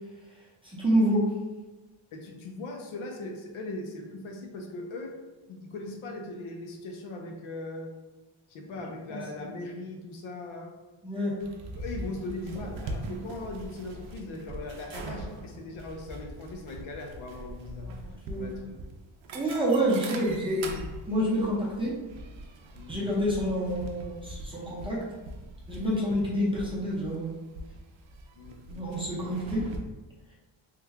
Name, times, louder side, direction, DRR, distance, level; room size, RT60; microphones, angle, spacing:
voice 1, 0.7-1.3 9.1-9.5 11.0-11.3 18.3-18.5 19.3-20.8 21.1-21.9 22.9-25.0 25.7-27.3 28.7-29.6, equal, 10° right, -6 dB, 0.7 m, -28 dB
voice 2, 2.1-5.1 5.5-7.9 8.5-10.8 11.8-17.9 18.3-18.8 22.7-23.0 28.4-28.6, left 2 dB, 75° left, 2 dB, 0.7 m, -39 dB
sound 1, 11.4-29.8, right 2 dB, 70° right, 0.6 m, -42 dB
3.1 x 2.2 x 3.5 m, 1.2 s
wide cardioid pair, 155°, 49 cm